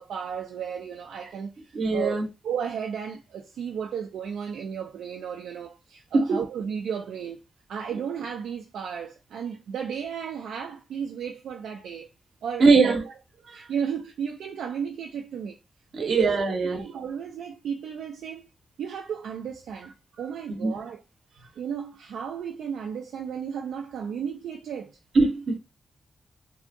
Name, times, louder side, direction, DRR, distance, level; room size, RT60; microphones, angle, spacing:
voice 1, 0.0-7.4 7.7-12.1 12.4-13.0 13.5-15.6 15.9-18.5 18.8-21.0 21.6-25.0, right 7 dB, 85° right, 0.3 m, -34 dB
voice 2, 1.7-2.3 6.1-6.4 12.6-13.0 13.5-13.7 15.9-16.8 20.6-20.7 25.1-25.6, right 3 dB, 65° right, 0.7 m, -21 dB
2.7 x 2.4 x 2.5 m
supercardioid pair, 50°, 0 cm